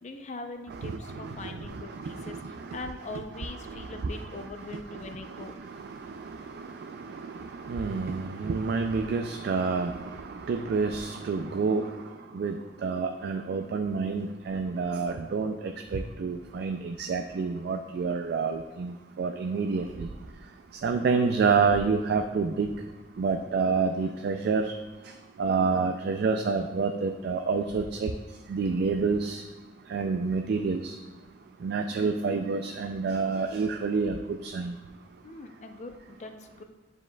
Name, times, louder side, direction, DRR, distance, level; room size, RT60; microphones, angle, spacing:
voice 1, 0.0-2.4 2.7-5.6 35.2-36.6, left 2 dB, 40° left, 6 dB, 0.5 m, -41 dB
voice 2, 0.8-1.5 2.0-2.5 3.7-3.8 4.0-4.1 7.1-7.3 7.6-9.9 10.5-11.9 12.3-12.5 12.8-20.1 20.8-22.7 23.2-24.7 25.4-28.1 28.5-29.4 29.9-30.9 31.6-34.1 34.4-34.7, right 4 dB, 60° right, 5 dB, 0.3 m, -28 dB
9.6 x 4.9 x 2.2 m, 1.2 s
head